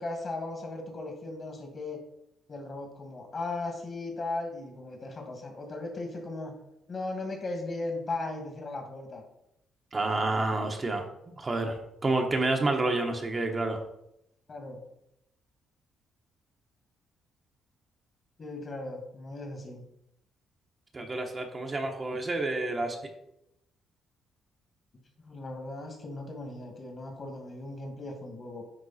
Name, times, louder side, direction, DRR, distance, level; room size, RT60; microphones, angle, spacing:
voice 1, 0.0-2.0 2.5-6.6 6.9-9.2 14.5-14.8 18.4-19.8 25.2-28.7, left 2 dB, 40° left, 2 dB, 2.1 m, -37 dB
voice 2, 9.9-11.0 11.3-13.8 20.9-23.0, right 2 dB, 30° right, 2 dB, 1.1 m, -29 dB
9.9 x 3.6 x 4.2 m, 0.81 s
cardioid pair, 90°, 0 cm